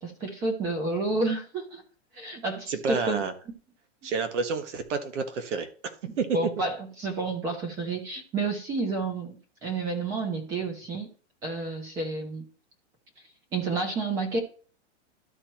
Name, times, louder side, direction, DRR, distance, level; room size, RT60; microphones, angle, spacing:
voice 1, 0.0-1.8 2.1-3.2 6.3-9.4 9.6-11.1 11.4-12.4 13.5-14.4, right 3 dB, 10° right, 0.5 m, -30 dB
voice 2, 2.7-3.3 4.0-5.7 6.2-6.5, right 5 dB, 75° right, 1.5 m, -29 dB
12.5 x 4.4 x 3.0 m
supercardioid pair, 175°, 36 cm